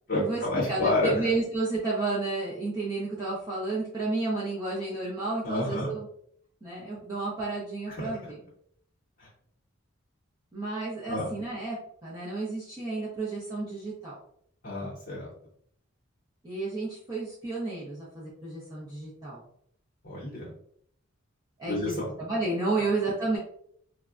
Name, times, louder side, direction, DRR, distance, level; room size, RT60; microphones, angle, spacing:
voice 1, 0.1-1.1 5.4-5.9 7.9-8.1 9.2-9.3 11.1-11.3 14.6-15.3 20.0-20.5 21.7-22.1 22.7-22.8, left 2 dB, 45° left, -6 dB, 0.8 m, -29 dB
voice 2, 0.7-6.1 6.6-8.4 10.5-11.8 12.0-14.2 16.4-19.4 21.6-23.4, right 3 dB, 20° right, -8 dB, 0.6 m, -31 dB
3.3 x 2.1 x 2.4 m, 0.65 s
head